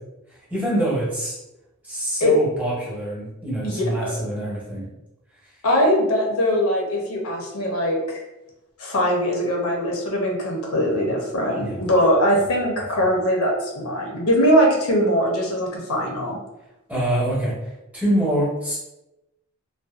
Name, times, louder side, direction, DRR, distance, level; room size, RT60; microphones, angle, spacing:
voice 1, 0.5-1.4 1.8-4.9 11.6-11.8 16.9-17.5 17.9-18.8, right 1 dB, 5° right, -7 dB, 0.9 m, -25 dB
voice 2, 3.6-4.1 5.6-8.2 8.8-16.4, equal, 75° left, 0 dB, 0.6 m, -21 dB
2.6 x 2.2 x 2.4 m, 0.95 s
head